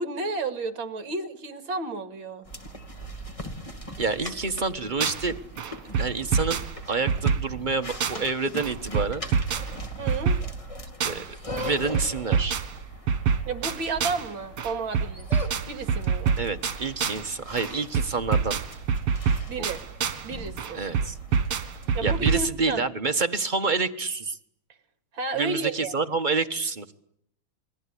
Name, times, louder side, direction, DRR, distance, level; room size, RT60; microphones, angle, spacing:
voice 1, 0.0-2.5 10.0-10.4 13.4-15.3 15.7-16.4 19.5-19.8 20.2-20.9 21.9-22.9 25.1-25.9, right 3 dB, 65° right, 9 dB, 2.8 m, -32 dB
sound 1, 2.5-22.1, right 1 dB, 15° left, 2.2 m, -41 dB
voice 2, 4.0-5.3 6.0-9.3 11.0-11.2 11.6-12.6 16.4-18.6 19.6-19.7 20.7-21.2 22.0-24.4 25.4-26.9, right 4 dB, 30° right, 7 dB, 1.0 m, -28 dB
sound 2, 4.5-5.3 5.6-8.3 8.6-11.3 11.6-14.3 14.6-17.3 17.6-20.3 20.6-22.5, right 6 dB, 85° right, 2.5 m, -27 dB
28.5 x 21.0 x 9.9 m, 0.73 s
omnidirectional pair, 2.4 m